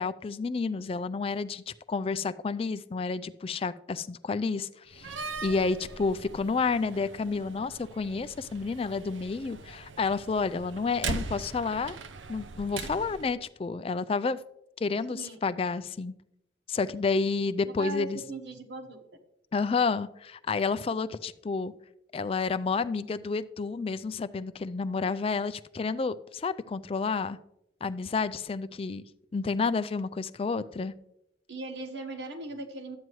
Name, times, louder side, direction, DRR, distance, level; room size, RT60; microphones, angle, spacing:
voice 1, 0.0-1.6 1.9-5.1 5.4-12.0 12.3-14.4 14.8-16.1 16.7-18.2 19.5-21.7 22.1-27.4 27.8-29.0 29.3-30.9, left 4 dB, 30° left, 13 dB, 0.3 m, -30 dB
Slam, 4.9-13.3, right 4 dB, 85° right, 0.6 m, -40 dB
voice 2, 15.1-15.4 17.6-19.0 31.5-33.0, right 2 dB, 65° right, 5 dB, 1.3 m, -39 dB
12.0 x 9.0 x 3.1 m, 0.82 s
head